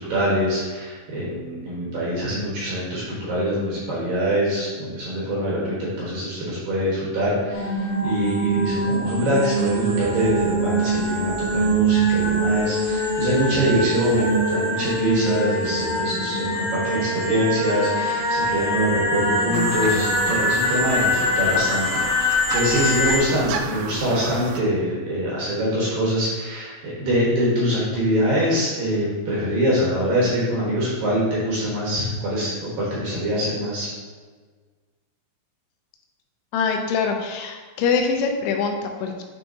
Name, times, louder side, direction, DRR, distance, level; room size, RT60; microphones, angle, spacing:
voice 1, 0.0-33.9, equal, 65° right, -7 dB, 2.5 m, -24 dB
sound 1, 7.5-23.2, right 1 dB, 50° left, 2.1 m, -23 dB
sound 2, 19.5-24.6, right 6 dB, 90° right, 3.1 m, -32 dB
voice 2, 36.5-39.2, left 5 dB, 90° left, 3 dB, 3.2 m, -24 dB
9.2 x 4.6 x 2.8 m, 1.5 s
omnidirectional pair, 5.5 m